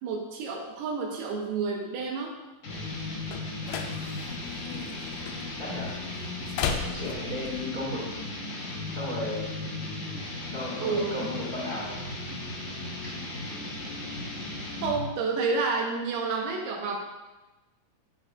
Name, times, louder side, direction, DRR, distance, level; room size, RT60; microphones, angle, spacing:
voice 1, 0.0-2.4 10.8-11.3 14.8-17.0, right 4 dB, 80° right, 0 dB, 2.9 m, -30 dB
sound 1, 2.6-15.2, left 2 dB, 55° left, 2.1 m, -36 dB
sound 2, 2.7-7.7, left 6 dB, 80° left, 2.5 m, -37 dB
voice 2, 4.6-4.9 5.6-5.9 6.8-8.0 8.9-9.5 10.5-12.0 13.0-13.1, left 1 dB, 30° right, -8 dB, 2.3 m, -35 dB
7.8 x 7.6 x 2.5 m, 1.1 s
omnidirectional pair, 4.6 m